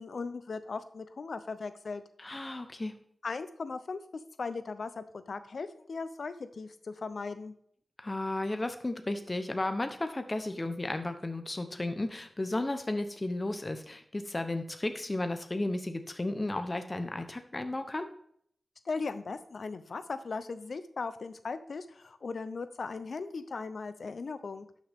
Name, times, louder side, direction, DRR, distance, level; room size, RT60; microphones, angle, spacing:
voice 1, 0.0-2.0 3.2-4.0 4.4-7.5 18.8-24.7, left 4 dB, 75° left, 12 dB, 0.7 m, -38 dB
voice 2, 2.2-2.9 8.0-18.1, left 2 dB, 30° left, 8 dB, 0.9 m, -34 dB
12.0 x 6.3 x 3.6 m, 0.64 s
wide cardioid pair, 80°, 0 cm